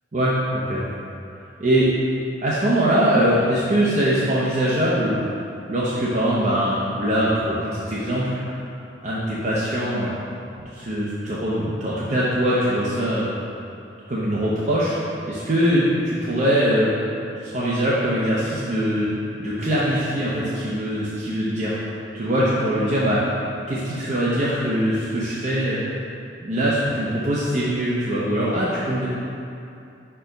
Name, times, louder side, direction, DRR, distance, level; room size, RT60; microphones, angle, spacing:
voice 1, 2.4-5.2 5.7-8.6 9.0-10.1 10.6-13.3 14.1-15.0 15.3-16.9 17.4-21.8 22.1-23.3 23.7-25.8 26.4-29.1, equal, 40° right, -8 dB, 0.8 m, -22 dB
5.7 x 4.5 x 5.1 m, 2.7 s
head